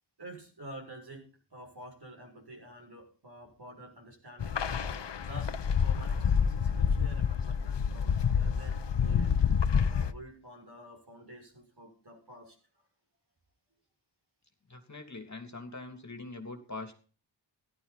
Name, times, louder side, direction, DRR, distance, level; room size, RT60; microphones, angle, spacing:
voice 1, 0.2-5.6 5.8-9.4 9.9-12.6, right 1 dB, 55° right, 2 dB, 6.8 m, -49 dB
sound 1, 4.4-10.1, left 7 dB, 65° left, 0.9 m, -28 dB
voice 2, 14.7-16.9, left 3 dB, 35° left, 5 dB, 3.1 m, -43 dB
16.5 x 12.0 x 4.2 m, 0.38 s
wide cardioid pair, 85°, 46 cm